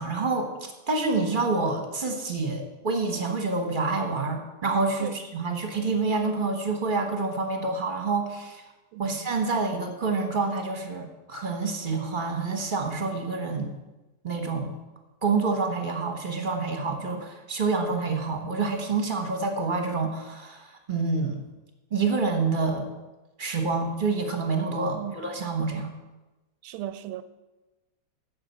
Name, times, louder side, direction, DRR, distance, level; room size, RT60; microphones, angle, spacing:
voice 1, 0.0-8.6 9.0-13.7 14.2-14.7 15.2-21.4 21.9-22.9 23.4-25.9, right 3 dB, 30° right, 1.0 m, -27 dB
voice 2, 26.6-27.2, right 13 dB, 85° right, 1.4 m, -36 dB
8.3 x 6.7 x 8.2 m
omnidirectional pair, 2.4 m